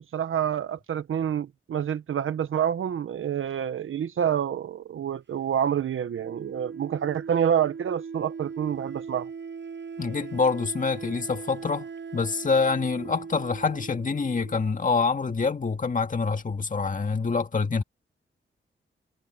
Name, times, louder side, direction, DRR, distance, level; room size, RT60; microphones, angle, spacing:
voice 1, 0.1-9.3, right 9 dB, 80° right, 0.9 m, -27 dB
Wind instrument woodwind instrument, 6.1-14.9, right 5 dB, 60° right, 6.9 m, -39 dB
voice 2, 10.0-11.9 12.1-17.8, left 4 dB, 40° left, 1.8 m, -26 dB
cardioid pair, 85°, 21 cm